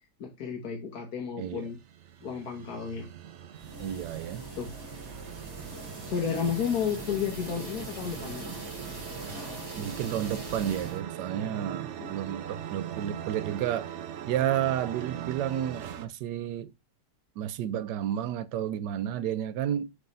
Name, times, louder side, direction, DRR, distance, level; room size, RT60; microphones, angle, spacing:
voice 1, 0.2-1.8 2.2-3.1 4.6-4.9 6.0-8.5 12.0-12.4, left 7 dB, 60° left, 1.7 m, -32 dB
sound 1, 1.4-16.1, right 10 dB, 60° right, 0.8 m, -41 dB
voice 2, 1.4-1.7 3.8-4.5 9.8-13.9 14.3-16.7 17.4-19.9, right 10 dB, 85° right, 1.2 m, -31 dB
sound 2, 3.5-11.0, right 2 dB, 15° right, 1.8 m, -41 dB
6.6 x 3.5 x 5.3 m
omnidirectional pair, 1.8 m